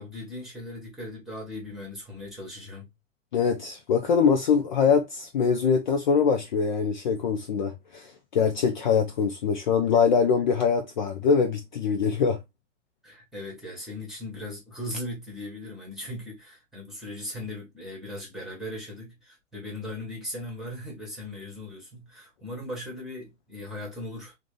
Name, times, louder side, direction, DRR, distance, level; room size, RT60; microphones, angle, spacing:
voice 1, 0.0-2.9 9.8-10.0 13.0-24.4, left 1 dB, ahead, 1.2 m, -38 dB
voice 2, 3.3-12.4, left 6 dB, 40° left, 0.5 m, -23 dB
3.6 x 2.1 x 3.5 m
figure-of-eight pair, 115°, 38 cm